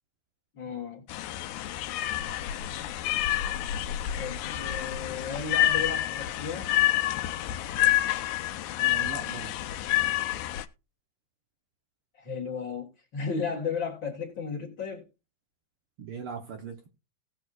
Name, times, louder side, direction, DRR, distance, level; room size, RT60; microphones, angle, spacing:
voice 1, 0.5-1.1 4.2-6.7 12.2-15.1, left 5 dB, 45° left, 2.2 m, -34 dB
sound 1, 1.1-10.7, left 13 dB, 85° left, 2.1 m, -28 dB
voice 2, 8.8-9.6 16.0-16.9, right 6 dB, 60° right, 1.5 m, -39 dB
18.0 x 6.3 x 2.4 m
omnidirectional pair, 3.4 m